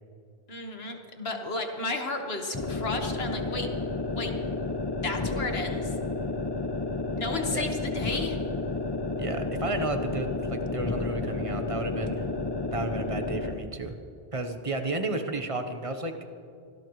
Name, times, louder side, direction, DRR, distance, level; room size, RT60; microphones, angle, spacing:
voice 1, 0.5-3.7 4.2-4.3 5.0-5.9 7.2-8.4, left 3 dB, 75° left, 3 dB, 1.9 m, -33 dB
sound 1, 2.5-13.6, left 3 dB, 25° left, 0.9 m, -31 dB
voice 2, 9.2-12.3 12.7-13.9 14.3-16.2, right 2 dB, 35° right, 7 dB, 1.1 m, -32 dB
25.0 x 17.0 x 3.2 m, 2.4 s
omnidirectional pair, 1.0 m